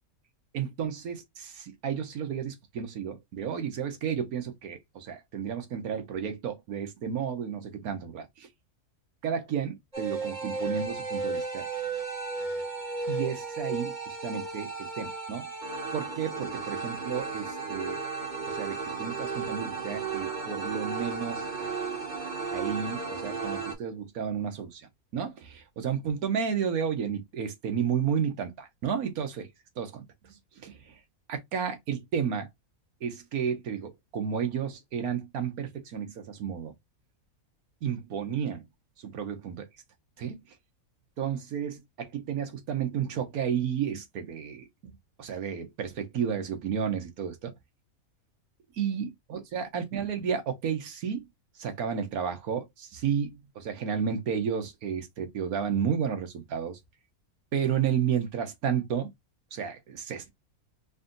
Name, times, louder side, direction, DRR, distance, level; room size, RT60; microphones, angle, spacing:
voice 1, 0.5-8.5 9.2-11.7 13.1-15.5 15.9-18.0 18.5-21.7 22.5-29.5 29.8-30.0 30.3-31.0 31.3-32.5 33.0-36.7 37.8-38.7 39.0-39.7 40.2-40.4 41.2-47.5 48.7-51.3 51.6-56.8 57.5-59.1 59.5-60.3, right 7 dB, 85° right, 1.5 m, -32 dB
sound 1, 9.9-23.7, right 4 dB, 30° right, 1.6 m, -34 dB
4.1 x 2.6 x 3.8 m
omnidirectional pair, 1.5 m